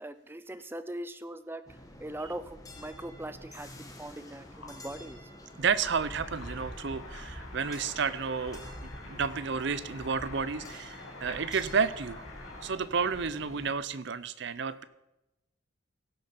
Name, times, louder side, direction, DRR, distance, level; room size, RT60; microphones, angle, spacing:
voice 1, 0.0-1.6 2.0-5.2, right 1 dB, 10° right, 12 dB, 0.5 m, -41 dB
sound 1, 1.7-13.7, equal, 15° left, 1.3 m, -47 dB
sound 2, 3.4-12.7, left 3 dB, 75° left, 2.4 m, -48 dB
voice 2, 5.6-12.2 12.6-14.8, right 5 dB, 55° right, 15 dB, 0.6 m, -31 dB
16.0 x 6.6 x 5.9 m, 0.93 s
head